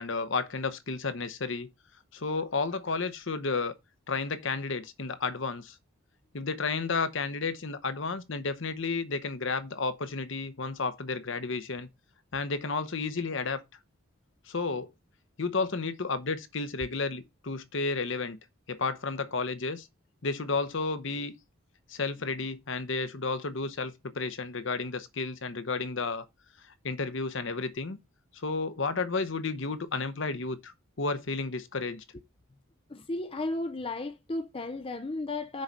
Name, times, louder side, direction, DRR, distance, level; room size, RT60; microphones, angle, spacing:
voice 1, 0.0-1.7 2.1-3.7 4.1-5.8 6.3-11.9 12.3-13.6 14.5-14.9 15.4-18.4 18.7-19.9 20.2-21.3 21.9-26.2 26.8-28.0 28.4-32.0, left 4 dB, 55° left, 0.9 m, -32 dB
voice 2, 32.9-35.6, left 2 dB, 25° left, 0.5 m, -34 dB
6.5 x 4.8 x 5.4 m
head